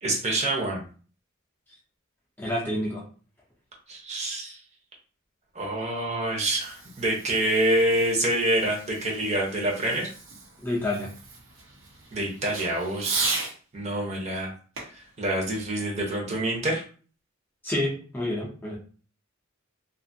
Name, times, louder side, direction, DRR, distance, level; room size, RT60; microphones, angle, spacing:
voice 1, 0.0-0.8 3.9-4.6 5.5-10.1 12.1-13.3 13.7-14.5 14.9-16.8, right 1 dB, 35° right, -1 dB, 0.9 m, -26 dB
voice 2, 2.4-3.0 10.6-11.1 17.6-18.8, left 1 dB, 10° left, -4 dB, 0.6 m, -28 dB
Fireworks, 6.4-13.6 14.7-16.4, right 3 dB, 75° right, 1.0 m, -37 dB
2.6 x 2.5 x 2.6 m, 0.40 s
head